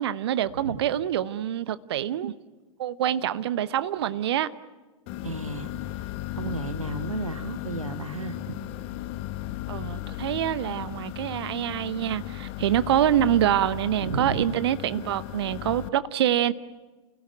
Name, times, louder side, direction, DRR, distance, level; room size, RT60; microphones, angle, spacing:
voice 1, 0.0-2.3 2.8-4.5 9.7-16.5, right 11 dB, 50° right, 0.9 m, -26 dB
sound 1, 5.1-15.9, left 14 dB, 30° left, 0.9 m, -36 dB
voice 2, 5.2-6.0 6.3-8.6 14.0-14.4, right 3 dB, 75° right, 1.7 m, -33 dB
29.0 x 17.0 x 9.1 m
figure-of-eight pair, 100°, 17 cm